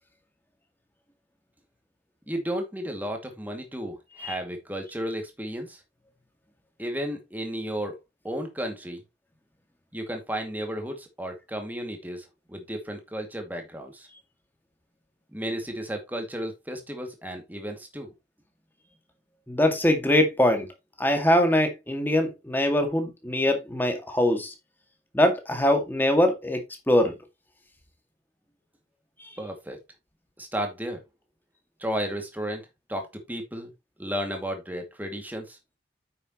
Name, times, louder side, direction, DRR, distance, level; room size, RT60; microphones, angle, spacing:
voice 1, 2.3-5.8 6.8-8.0 8.2-9.0 9.9-14.1 15.3-18.1 29.4-29.8 30.4-31.0 31.8-32.6 32.9-33.7 34.0-35.6, equal, 10° right, 2.3 m, -33 dB
voice 2, 19.5-20.7 21.0-24.5 25.1-27.1 29.2-29.3, left 1 dB, 10° left, 2.1 m, -23 dB
9.1 x 6.9 x 3.1 m
head